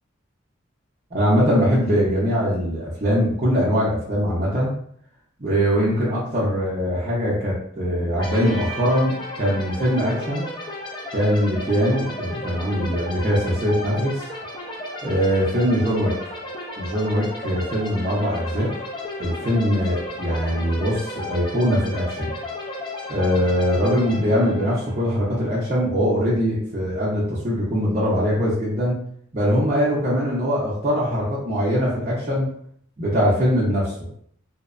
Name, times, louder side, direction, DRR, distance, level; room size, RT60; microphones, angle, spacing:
voice 1, 1.1-4.7 5.4-10.5 11.1-14.3 15.0-16.1 16.8-18.7 19.2-22.4 23.1-29.0 29.3-32.5 33.0-34.1, equal, 30° right, -8 dB, 0.5 m, -22 dB
sound 1, 8.2-25.8, left 1 dB, 20° left, 0.3 m, -34 dB
2.7 x 2.0 x 2.4 m, 0.65 s
head